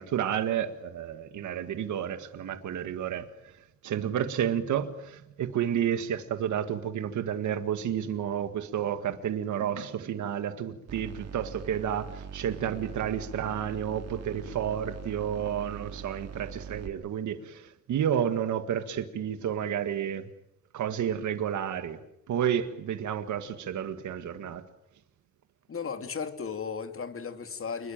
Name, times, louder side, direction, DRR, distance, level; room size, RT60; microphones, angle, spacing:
voice 1, 0.0-3.3 3.8-20.3 20.7-22.0 22.3-24.6, right 9 dB, 85° right, 1.7 m, -31 dB
sound 1, 10.9-16.9, right 6 dB, 60° right, 2.6 m, -42 dB
voice 2, 25.7-27.9, left 6 dB, 50° left, 2.8 m, -35 dB
28.5 x 21.5 x 8.9 m
cardioid pair, 95°, 29 cm